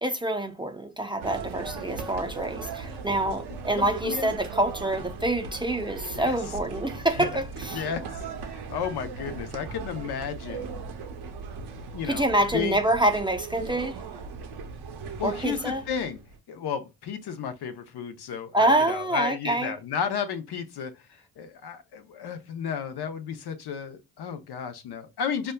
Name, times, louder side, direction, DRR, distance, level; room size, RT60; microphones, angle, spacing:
voice 1, 0.0-7.8 12.0-14.0 15.2-15.8 18.5-19.8, right 1 dB, 10° right, 0.5 m, -26 dB
sound 1, 1.2-16.4, right 5 dB, 70° right, 0.7 m, -38 dB
voice 2, 3.7-4.3 6.1-6.3 7.2-7.3 7.7-10.7 11.9-12.3 12.5-12.8 15.2-16.2 16.5-20.9 21.4-25.5, left 7 dB, 65° left, 0.7 m, -33 dB
5.1 x 2.2 x 2.2 m
hypercardioid pair, 40°, 42 cm